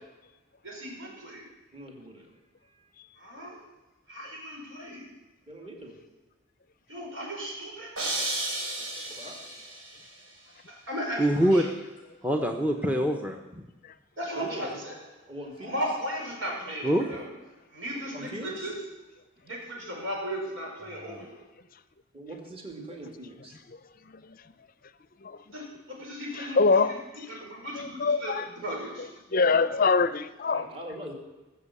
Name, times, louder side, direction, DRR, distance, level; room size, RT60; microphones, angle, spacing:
voice 1, 0.6-1.5 3.2-3.6 4.1-5.1 6.9-7.9 10.7-11.7 14.2-15.0 15.6-17.3 17.7-18.7 19.4-21.4 25.5-29.1, equal, 75° right, -2 dB, 5.5 m, -36 dB
voice 2, 1.7-2.3 5.5-6.0 8.8-9.4 14.4-14.8 15.3-15.7 17.9-18.7 22.1-23.6 30.5-31.1, right 1 dB, 30° right, 1 dB, 2.4 m, -42 dB
sound 1, 8.0-10.0, right 2 dB, 90° right, 4.6 m, -33 dB
voice 3, 11.2-11.7 12.2-13.7 16.8-17.1 21.1-21.2, equal, 10° right, 4 dB, 0.9 m, -25 dB
voice 4, 26.6-26.9 28.0-28.5 29.3-30.7, left 4 dB, 45° left, 14 dB, 0.6 m, -23 dB
19.0 x 7.5 x 8.4 m, 1.1 s
head